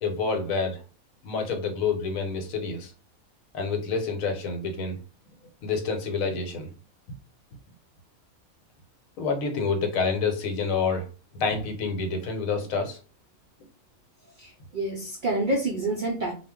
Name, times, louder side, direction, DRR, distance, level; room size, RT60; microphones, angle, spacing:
voice 1, 0.0-0.8 1.2-2.9 3.5-5.0 5.6-6.7 9.2-11.1 11.3-13.0, left 4 dB, 75° left, 4 dB, 1.1 m, -28 dB
voice 2, 14.4-16.3, right 2 dB, 80° right, -1 dB, 0.4 m, -28 dB
2.4 x 2.0 x 3.5 m, 0.35 s
omnidirectional pair, 1.5 m